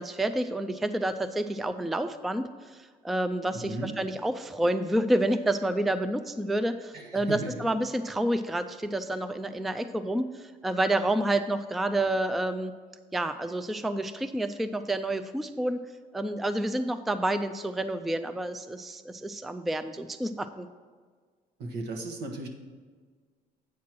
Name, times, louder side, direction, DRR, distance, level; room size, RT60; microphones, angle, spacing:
voice 1, 0.0-12.7 13.1-15.8 16.1-20.7, right 1 dB, ahead, 10 dB, 0.3 m, -29 dB
voice 2, 3.5-3.9 6.9-7.5 21.6-22.5, right 2 dB, 75° right, 3 dB, 1.3 m, -36 dB
8.4 x 4.5 x 6.0 m, 1.5 s
cardioid pair, 110°, 17 cm